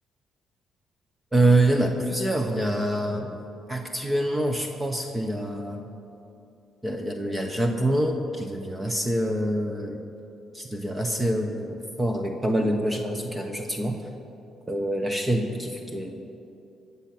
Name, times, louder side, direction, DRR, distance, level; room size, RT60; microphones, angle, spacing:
voice 1, 1.3-3.4 3.7-5.8 6.8-10.0 10.5-14.0 14.7-16.4, right 1 dB, 15° right, 3 dB, 1.2 m, -26 dB
20.5 x 7.2 x 6.1 m, 2.7 s
cardioid pair, 90°, 0 cm